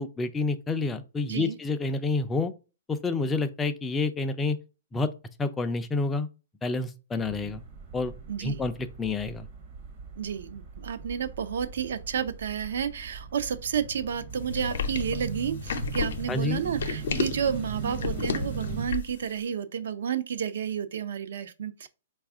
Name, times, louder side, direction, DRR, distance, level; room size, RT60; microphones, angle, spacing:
voice 1, 0.0-2.5 2.9-4.6 4.9-5.1 5.4-6.3 6.6-7.6 7.9-8.1 8.4-9.5 16.3-16.6, left 3 dB, 10° left, 0.3 m, -28 dB
sound 1, 7.2-18.9, right 5 dB, 40° right, 0.7 m, -39 dB
voice 2, 8.3-8.6 10.2-21.9, right 8 dB, 70° right, 0.4 m, -31 dB
sound 2, 14.5-19.2, left 6 dB, 75° left, 0.6 m, -31 dB
4.1 x 2.3 x 3.5 m
hypercardioid pair, 150°, 0 cm